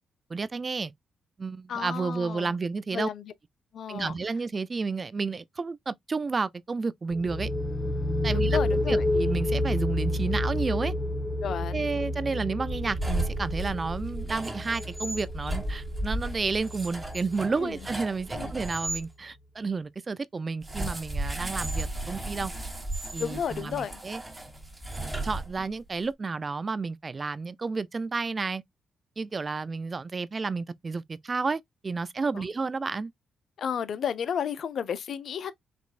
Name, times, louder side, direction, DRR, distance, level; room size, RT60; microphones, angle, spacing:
voice 1, 0.3-0.9 1.4-3.1 3.9-7.5 8.2-10.9 11.7-22.5 23.1-24.2 25.2-28.6 29.2-33.1, right 4 dB, 40° right, 0.4 m, -31 dB
voice 2, 1.7-2.5 2.9-3.3 3.7-4.2 8.3-9.0 11.4-11.9 17.6-17.8 18.3-18.5 23.2-24.0 32.3-32.5 33.6-35.5, left 8 dB, 65° left, 0.6 m, -32 dB
sound 1, 7.1-18.6, left 1 dB, 30° left, 1.6 m, -30 dB
sound 2, 12.7-19.0 20.6-25.9, right 1 dB, 15° right, 1.8 m, -35 dB
5.2 x 3.0 x 2.5 m
supercardioid pair, 60°, 0 cm